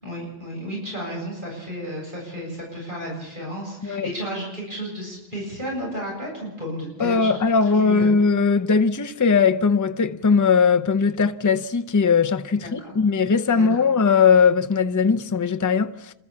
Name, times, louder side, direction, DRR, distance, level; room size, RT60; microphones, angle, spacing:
voice 1, 0.0-8.1 12.5-12.9 13.5-13.8, equal, 55° right, 7.9 m, -33 dB
voice 2, 7.0-15.9, left 5 dB, 20° left, 0.6 m, -19 dB
28.0 x 13.0 x 7.3 m
omnidirectional pair, 1.0 m